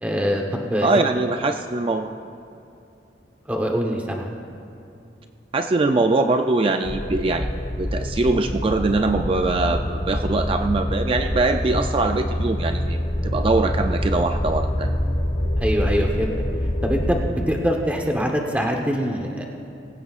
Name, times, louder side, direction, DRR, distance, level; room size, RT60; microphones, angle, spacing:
voice 1, 0.0-1.0 3.5-4.3 15.6-16.3 16.8-19.4, equal, 10° right, 1 dB, 1.0 m, -23 dB
voice 2, 0.8-2.2 5.5-7.5 7.8-14.9, right 3 dB, 30° right, 6 dB, 0.4 m, -22 dB
sound 1, 6.8-17.3, left 1 dB, 30° left, 0.8 m, -25 dB
22.5 x 15.5 x 2.4 m, 2.7 s
head